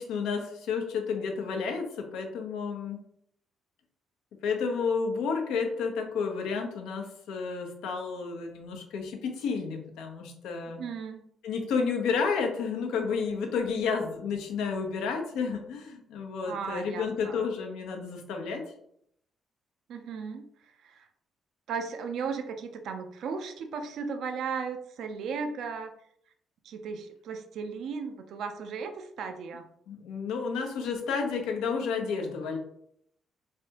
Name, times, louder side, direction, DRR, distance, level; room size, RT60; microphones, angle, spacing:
voice 1, 0.0-3.0 4.4-10.8 11.4-18.6 29.9-32.6, left 5 dB, 80° left, 3 dB, 0.7 m, -31 dB
voice 2, 10.8-11.3 16.4-17.4 19.9-21.1 21.7-25.9 26.6-29.7, right 5 dB, 70° right, 6 dB, 0.4 m, -36 dB
3.4 x 3.3 x 2.9 m, 0.70 s
supercardioid pair, 65°, 0 cm